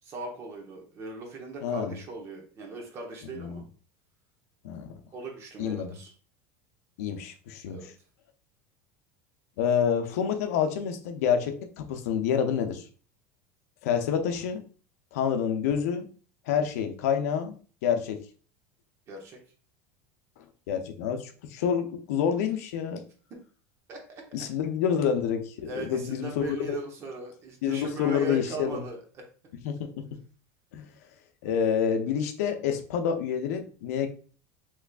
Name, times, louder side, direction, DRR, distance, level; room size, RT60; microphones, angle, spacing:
voice 1, 0.0-3.6 5.1-6.1 7.7-7.9 19.1-19.4 23.9-24.4 25.6-29.2, right 3 dB, 35° right, 1 dB, 0.9 m, -39 dB
voice 2, 1.6-2.0 3.3-3.6 4.6-4.9 5.6-6.0 7.0-7.8 9.6-12.8 13.8-14.6 15.1-16.1 16.5-17.5 17.8-18.2 20.7-23.0 24.3-26.8 27.6-28.8 29.6-29.9 30.7-30.9 31.4-34.1, left 7 dB, 80° left, 7 dB, 0.5 m, -28 dB
3.4 x 3.1 x 2.4 m, 0.40 s
supercardioid pair, 145°, 8 cm